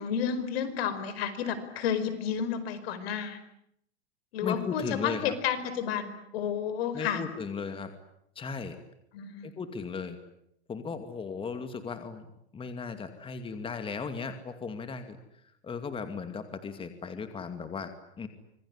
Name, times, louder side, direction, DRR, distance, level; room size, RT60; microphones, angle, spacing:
voice 1, 0.0-3.4 4.3-7.2 9.1-9.5, left 8 dB, 65° left, 12 dB, 5.0 m, -31 dB
voice 2, 4.4-5.3 6.9-7.9 8.4-8.8 9.4-10.2 10.7-12.3 12.5-15.2 15.6-18.3, left 5 dB, 15° left, 8 dB, 2.5 m, -36 dB
26.0 x 22.5 x 9.8 m, 0.75 s
hypercardioid pair, 120°, 33 cm